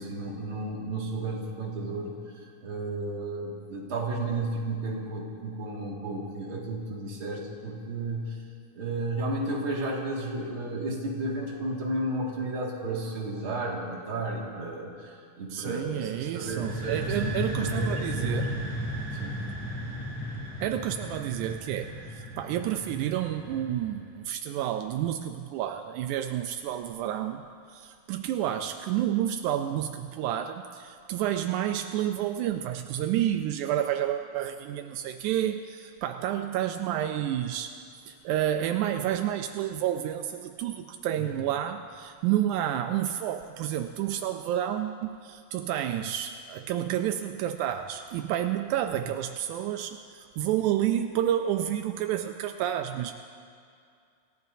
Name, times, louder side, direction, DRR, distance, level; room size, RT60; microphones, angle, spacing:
voice 1, 0.0-8.4 8.7-18.6 19.2-19.4 41.2-41.3, right 2 dB, 45° right, -3 dB, 2.7 m, -33 dB
voice 2, 15.5-18.5 20.6-27.4 27.7-37.7 38.1-53.1, right 11 dB, 85° right, 7 dB, 2.0 m, -30 dB
sound 1, 16.4-24.1, equal, 10° left, 3.6 m, -35 dB
27.5 x 16.0 x 2.7 m, 2.3 s
omnidirectional pair, 3.5 m